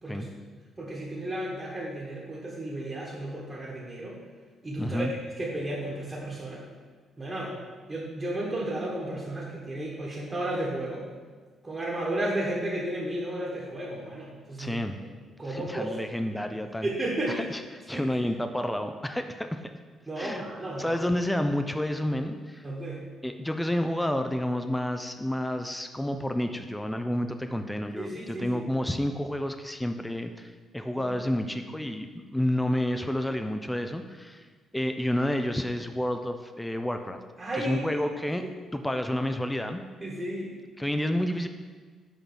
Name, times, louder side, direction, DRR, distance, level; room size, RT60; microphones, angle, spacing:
voice 1, 0.8-4.2 4.6-5.1 5.4-6.6 7.2-7.5 7.9-11.1 11.6-14.8 15.4-15.9 16.2-16.4 16.8-17.4 17.9-18.0 20.1-21.0 22.6-23.0 28.0-28.6 31.0-31.2 37.4-38.0 40.0-40.5, right 1 dB, 25° right, -5 dB, 1.4 m, -33 dB
voice 2, 4.8-5.1 14.6-15.0 15.4-16.9 17.3-19.6 20.2-20.4 20.8-22.7 23.2-34.5 34.7-37.2 37.5-38.4 38.7-39.8 40.8-41.5, left 1 dB, 5° left, 7 dB, 0.4 m, -30 dB
6.7 x 4.0 x 6.2 m, 1.5 s
cardioid pair, 90°, 0 cm